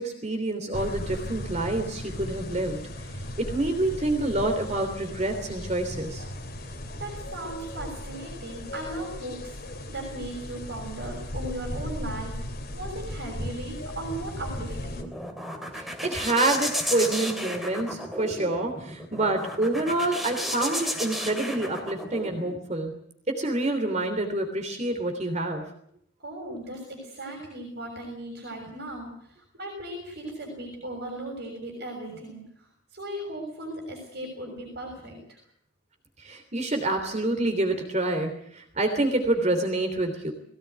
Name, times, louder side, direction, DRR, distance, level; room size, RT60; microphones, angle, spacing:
voice 1, 0.0-2.8 3.4-6.2 15.7-22.9 23.4-25.6 36.2-40.3, right 2 dB, 35° right, 4 dB, 3.2 m, -27 dB
sound 1, 0.7-15.0, left 1 dB, 50° left, 3.2 m, -37 dB
voice 2, 7.0-12.3 12.7-15.0 26.2-32.4 32.9-35.4, right 1 dB, 55° right, 1 dB, 6.6 m, -37 dB
sound 2, 14.7-22.6, equal, ahead, 2.9 m, -33 dB
21.0 x 17.5 x 9.4 m, 0.70 s
head